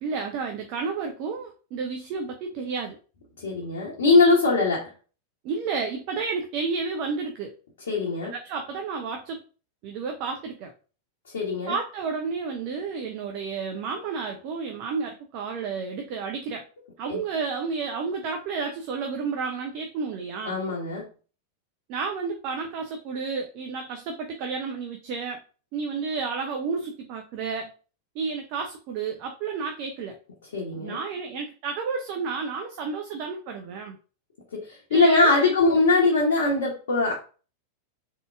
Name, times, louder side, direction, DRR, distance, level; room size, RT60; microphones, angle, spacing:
voice 1, 0.0-3.0 5.4-7.5 8.3-9.4 9.8-10.7 11.7-16.6 17.0-20.6 21.9-25.4 25.7-27.7 28.1-30.2 30.8-34.0 34.9-35.5, right 5 dB, 45° right, 3 dB, 0.7 m, -31 dB
voice 2, 3.4-4.9 7.9-8.3 11.3-11.7 17.1-17.2 20.4-21.1 30.5-31.0 34.5-37.1, left 3 dB, 60° left, -3 dB, 1.2 m, -21 dB
3.8 x 3.7 x 3.4 m, 0.37 s
figure-of-eight pair, 90°, 0 cm